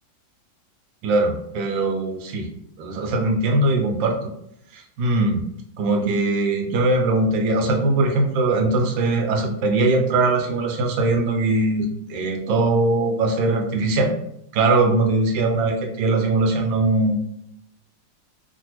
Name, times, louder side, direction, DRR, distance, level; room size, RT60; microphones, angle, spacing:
voice 1, 1.0-2.5 2.8-4.3 4.7-5.4 5.8-14.1 14.5-17.2, right 2 dB, 85° right, 3 dB, 1.3 m, -21 dB
3.2 x 2.4 x 2.9 m, 0.71 s
omnidirectional pair, 2.0 m